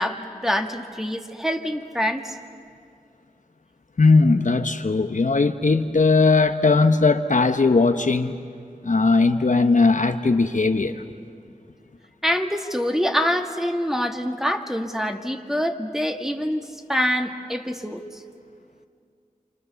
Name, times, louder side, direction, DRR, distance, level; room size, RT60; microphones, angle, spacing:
voice 1, 0.0-2.4 12.2-16.6 16.9-18.0, equal, 5° right, 4 dB, 1.8 m, -25 dB
voice 2, 4.0-8.3 8.8-11.0, left 3 dB, 65° left, 7 dB, 1.0 m, -18 dB
29.0 x 26.0 x 7.0 m, 2.3 s
wide cardioid pair, 45°, 14 cm